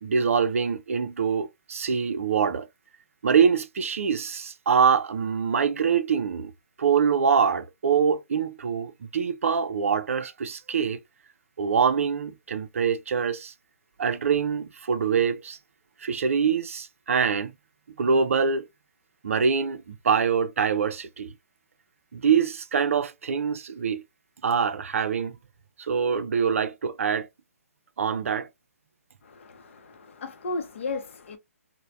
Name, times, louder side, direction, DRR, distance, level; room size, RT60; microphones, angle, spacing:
voice 1, 0.0-2.7 3.2-6.5 6.8-11.0 11.6-13.5 14.0-15.6 16.0-17.5 18.0-18.7 19.2-21.3 22.1-24.0 24.4-25.4 25.8-27.3 28.0-28.5, right 6 dB, 60° right, 0.4 m, -24 dB
voice 2, 29.2-31.4, left 3 dB, 55° left, 0.6 m, -35 dB
3.2 x 2.1 x 2.5 m
figure-of-eight pair, 140°, 8 cm